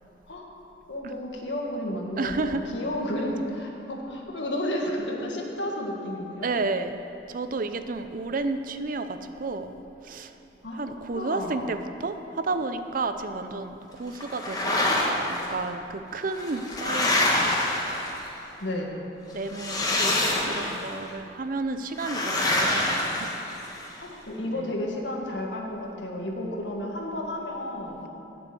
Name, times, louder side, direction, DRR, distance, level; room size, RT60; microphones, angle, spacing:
voice 1, 0.9-6.5 10.6-11.7 18.6-18.9 24.0-28.1, left 1 dB, 85° left, 0 dB, 1.7 m, -32 dB
voice 2, 2.2-2.7 3.4-3.5 6.4-7.0 7.3-9.7 10.0-10.3 10.7-14.9 15.3-17.6 19.3-23.4 24.5-24.8, right 3 dB, 50° right, 9 dB, 0.6 m, -32 dB
sound 1, 14.2-15.5 16.3-18.4 19.5-20.9 22.0-23.9, left 1 dB, 20° left, 1.4 m, -26 dB
9.3 x 7.8 x 7.7 m, 2.9 s
head